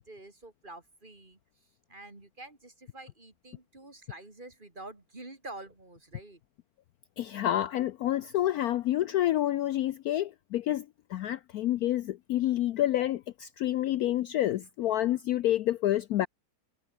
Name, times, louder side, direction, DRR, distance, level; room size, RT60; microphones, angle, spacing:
voice 1, 0.0-1.4 1.9-6.4, right 2 dB, 25° right, 3.3 m, -47 dB
voice 2, 7.2-16.3, left 13 dB, 70° left, 1.0 m, -28 dB
omnidirectional pair, 1.9 m